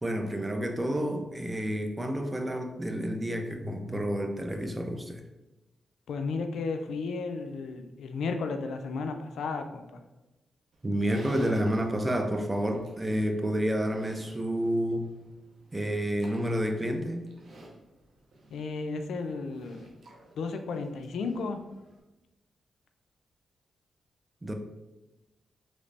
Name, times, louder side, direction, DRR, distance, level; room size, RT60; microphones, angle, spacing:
voice 1, 0.0-5.2 10.8-15.1 15.7-17.2 24.4-24.5, equal, 20° right, 5 dB, 0.5 m, -29 dB
voice 2, 6.1-10.0 18.5-19.9 20.4-21.6, left 4 dB, 85° left, 6 dB, 0.3 m, -33 dB
Livestock farm animals working animals, 10.7-22.0, right 1 dB, 75° right, 0.7 m, -54 dB
3.2 x 3.1 x 2.6 m, 1.0 s
cardioid pair, 65°, 0 cm